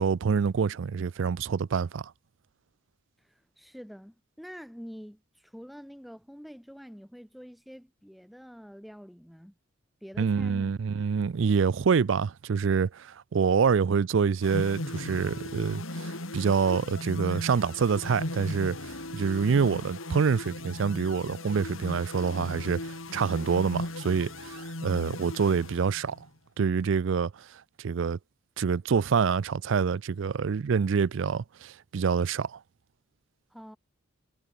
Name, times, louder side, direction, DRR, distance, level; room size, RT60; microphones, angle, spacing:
voice 1, 0.0-2.1 10.2-26.2 26.6-27.3 27.8-28.2 28.6-32.6, right 6 dB, 60° right, 0.4 m, -26 dB
voice 2, 3.2-9.5 10.0-10.7 33.5-33.8, equal, ahead, 4.2 m, -46 dB
sound 1, 14.4-26.3, left 1 dB, 75° left, 4.6 m, -37 dB
head